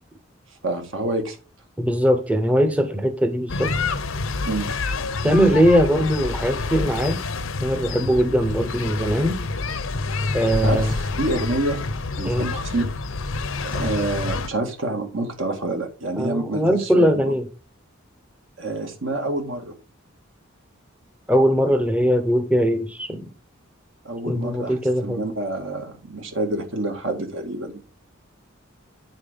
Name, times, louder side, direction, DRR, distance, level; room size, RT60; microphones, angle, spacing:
voice 1, 0.6-1.4 4.5-4.7 10.5-11.8 12.2-12.9 13.6-17.3 18.6-19.7 24.0-27.8, right 2 dB, 70° right, 2.1 m, -27 dB
voice 2, 1.8-3.8 5.2-7.3 7.6-9.4 10.3-10.9 12.2-12.5 16.2-17.4 21.3-23.2 24.3-25.2, equal, 5° right, 0.7 m, -20 dB
sound 1, 3.5-14.5, left 3 dB, 80° left, 0.8 m, -28 dB
9.1 x 4.3 x 5.2 m
head